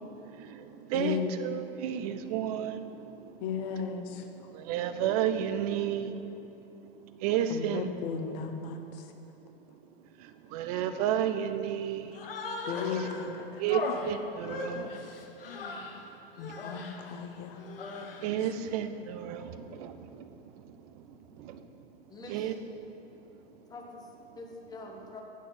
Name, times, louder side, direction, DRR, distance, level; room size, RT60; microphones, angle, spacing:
voice 1, 0.0-3.4 3.7-3.8 4.1-6.5 6.8-7.9 9.1-9.2 10.0-12.2 12.9-13.1 13.6-15.1 16.5-16.6 18.2-21.9 22.3-22.5 23.0-23.3, right 9 dB, 40° right, 10 dB, 0.6 m, -33 dB
voice 2, 0.9-1.4 3.4-4.2 7.5-8.8 12.7-13.6 16.4-17.6, left 6 dB, 45° left, 5 dB, 1.0 m, -35 dB
Human voice, 12.1-13.3 13.7-16.0 16.4-17.0 17.6-18.3, left 4 dB, 65° left, 1.1 m, -38 dB
voice 3, 22.1-22.6 23.1-25.2, left 2 dB, 15° left, 0 dB, 1.1 m, -46 dB
8.5 x 6.5 x 7.0 m, 3.0 s
figure-of-eight pair, 95°, 30 cm